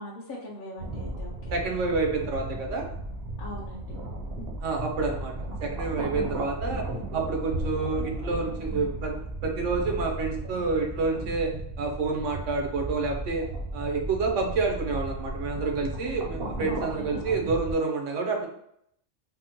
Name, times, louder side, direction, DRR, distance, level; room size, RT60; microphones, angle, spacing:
voice 1, 0.0-1.6 3.4-4.0 16.7-17.2, left 1 dB, 55° left, -5 dB, 0.6 m, -41 dB
sound 1, 0.8-17.7, right 1 dB, 60° right, 0.8 m, -35 dB
voice 2, 1.5-2.9 4.6-6.8 7.1-11.5 11.8-13.4 13.7-18.5, right 3 dB, 75° right, 2 dB, 1.0 m, -28 dB
3.5 x 2.0 x 2.8 m, 0.71 s
omnidirectional pair, 1.3 m